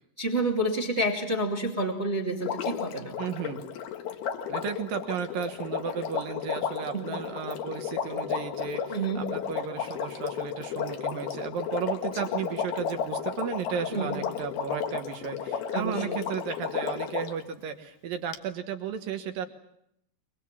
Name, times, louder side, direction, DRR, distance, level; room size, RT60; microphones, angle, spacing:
voice 1, 0.2-3.1 6.9-7.1 8.9-9.2 13.9-14.1 15.7-16.2, right 1 dB, 25° right, 0 dB, 1.5 m, -29 dB
Water, 2.4-17.4 18.3-18.4, left 7 dB, 70° left, 3.2 m, -33 dB
voice 2, 3.2-3.6 4.5-19.5, right 7 dB, 65° right, 7 dB, 2.5 m, -34 dB
24.0 x 23.5 x 7.3 m, 0.76 s
omnidirectional pair, 5.1 m